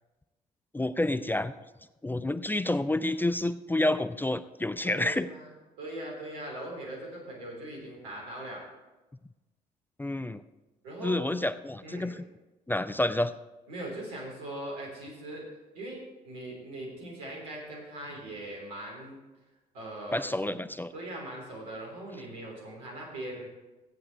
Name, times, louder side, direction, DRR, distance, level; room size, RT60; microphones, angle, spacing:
voice 1, 0.7-1.5 2.0-5.3 10.0-10.4 11.0-12.2 12.7-13.3 20.1-20.9, left 1 dB, 10° left, 12 dB, 0.5 m, -29 dB
voice 2, 4.8-5.5 5.8-8.6 10.8-11.3 11.8-12.1 13.7-15.5 15.7-19.2 19.7-20.6 20.9-23.5, right 1 dB, 70° right, -2 dB, 3.5 m, -40 dB
14.0 x 8.6 x 4.2 m, 1.1 s
figure-of-eight pair, 45°, 21 cm